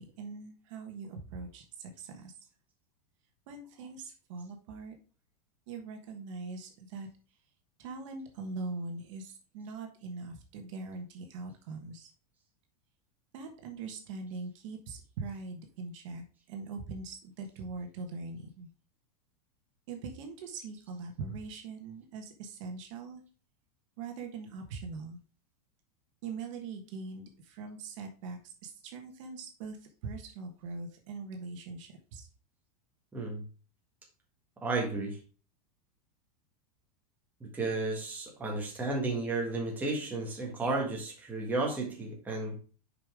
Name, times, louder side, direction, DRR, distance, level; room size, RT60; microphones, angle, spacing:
voice 1, 0.0-2.3 3.5-5.0 5.7-7.1 7.8-12.1 13.3-18.7 19.9-23.2 24.0-25.2 26.2-32.3, right 4 dB, 55° right, 4 dB, 1.4 m, -42 dB
voice 2, 33.1-33.4 34.6-35.2 37.4-42.6, right 2 dB, 10° right, -2 dB, 1.6 m, -33 dB
6.7 x 5.4 x 3.6 m, 0.36 s
supercardioid pair, 165°, 20 cm